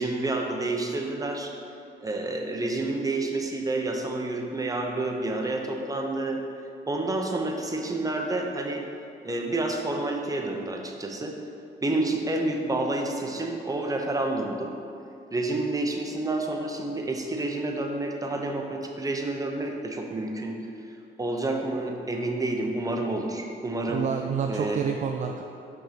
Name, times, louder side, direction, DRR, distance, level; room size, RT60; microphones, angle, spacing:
voice 1, 0.0-1.5 2.0-6.4 6.9-8.8 9.2-11.4 11.8-14.7 15.3-20.6 21.2-24.0 24.5-24.8, right 2 dB, 15° right, 2 dB, 0.8 m, -29 dB
voice 2, 23.9-25.4, right 6 dB, 40° right, 3 dB, 0.4 m, -28 dB
5.7 x 3.6 x 5.8 m, 2.6 s
cardioid pair, 90°, 20 cm